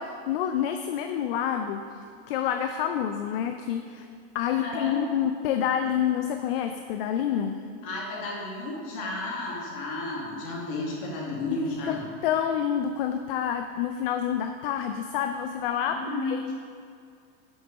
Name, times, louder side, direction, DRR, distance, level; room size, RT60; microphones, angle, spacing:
voice 1, 0.0-1.8 2.3-4.1 4.3-7.6 11.8-12.0 12.2-16.5, left 9 dB, 60° left, 6 dB, 0.5 m, -28 dB
voice 2, 4.5-5.0 7.8-12.0 15.8-16.4, left 2 dB, 40° left, -3 dB, 2.0 m, -33 dB
8.0 x 7.1 x 5.1 m, 2.3 s
supercardioid pair, 170°, 32 cm